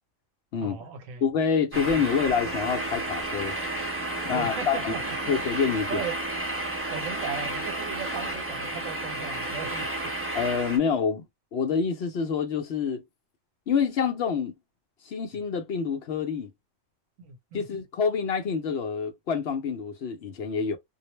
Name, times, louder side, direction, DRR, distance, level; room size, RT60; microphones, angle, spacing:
voice 1, 0.6-1.3 4.3-5.3 5.6-6.1 6.9-9.9 17.2-17.7, right 6 dB, 85° right, 1.1 m, -37 dB
voice 2, 1.2-3.6 4.2-4.9 5.3-6.0 10.3-11.2 11.5-13.0 13.7-14.6 15.0-16.5 17.5-20.8, left 6 dB, 60° left, 0.8 m, -27 dB
sound 1, 1.7-10.8, right 1 dB, 15° right, 0.4 m, -32 dB
2.4 x 2.0 x 3.1 m
omnidirectional pair, 1.3 m